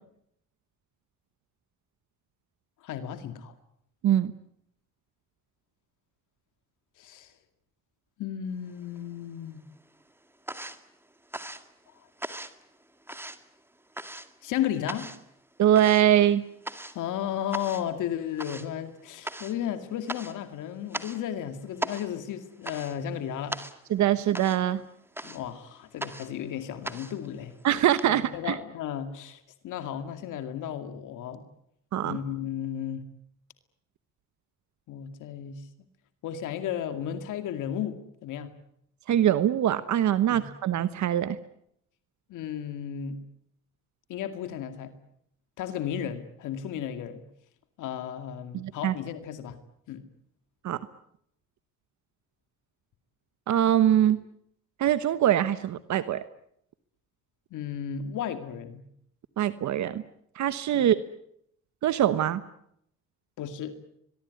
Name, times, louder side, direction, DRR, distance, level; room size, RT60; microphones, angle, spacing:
voice 1, 2.8-3.5 7.0-7.3 8.2-9.6 12.0-12.1 14.4-15.1 16.9-23.6 25.2-27.5 28.1-31.4 32.0-33.0 34.9-35.6 36.2-38.5 40.3-40.4 42.3-43.2 44.1-44.9 45.6-47.2 47.8-49.6 49.9-50.0 57.5-58.8 60.7-60.9 63.4-63.7, left 9 dB, 85° left, 9 dB, 2.3 m, -34 dB
sound 1, 8.7-9.5 9.8-28.0, right 1 dB, 10° right, 2.1 m, -40 dB
voice 2, 15.6-16.4 23.9-24.8 27.6-28.6 31.9-32.2 39.1-41.4 48.5-48.9 50.6-50.8 53.5-54.2 54.8-56.2 59.4-60.0 60.3-61.0 61.8-62.4, right 11 dB, 70° right, 13 dB, 1.1 m, -23 dB
23.0 x 22.5 x 9.5 m, 0.73 s
cardioid pair, 90°, 30 cm